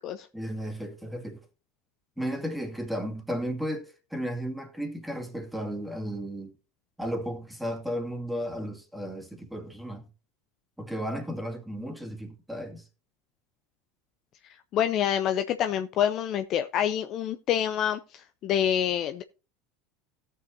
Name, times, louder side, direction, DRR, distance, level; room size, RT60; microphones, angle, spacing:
voice 1, 0.3-1.4 2.2-6.5 7.0-10.1 10.8-12.9, equal, 5° right, 2.2 m, -34 dB
voice 2, 14.7-19.2, left 10 dB, 45° left, 0.5 m, -27 dB
17.5 x 6.9 x 2.8 m
figure-of-eight pair, 75°, 0 cm